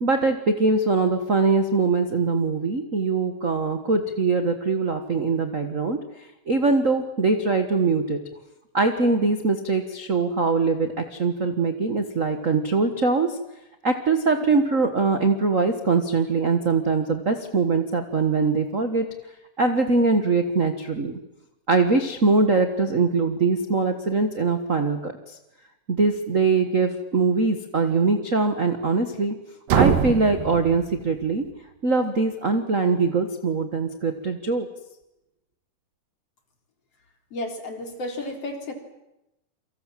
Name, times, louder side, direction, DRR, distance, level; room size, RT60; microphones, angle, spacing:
voice 1, 0.0-8.2 8.7-13.3 13.8-19.0 19.6-21.1 21.7-25.4 25.9-29.3 29.7-31.4 31.8-34.7, right 4 dB, 55° right, 7 dB, 0.8 m, -22 dB
sound 1, 29.7-31.5, right 9 dB, 80° right, 3.0 m, -24 dB
voice 2, 37.3-38.7, left 1 dB, 45° left, 4 dB, 4.4 m, -32 dB
29.0 x 24.5 x 7.5 m, 0.89 s
omnidirectional pair, 3.9 m